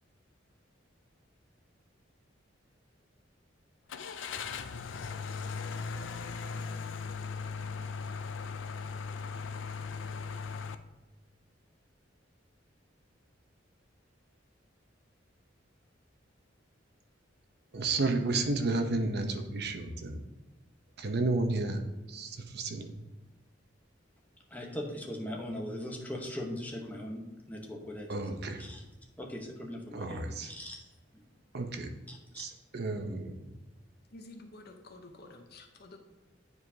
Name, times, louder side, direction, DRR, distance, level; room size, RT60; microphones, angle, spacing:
Car / Engine starting, 3.9-10.7, left 5 dB, 75° left, 0.4 m, -38 dB
voice 1, 17.7-20.2 21.0-21.8 22.1-22.9 28.1-28.7 29.9-30.5 31.5-31.9 32.4-33.5, right 3 dB, 60° right, 6 dB, 0.7 m, -32 dB
voice 2, 24.5-28.8 29.2-30.9 31.1-31.2 32.1-32.5, left 1 dB, 10° left, 0 dB, 1.0 m, -40 dB
voice 3, 34.1-36.0, left 2 dB, 55° left, 3 dB, 0.8 m, -50 dB
9.6 x 4.7 x 2.8 m, 1.1 s
head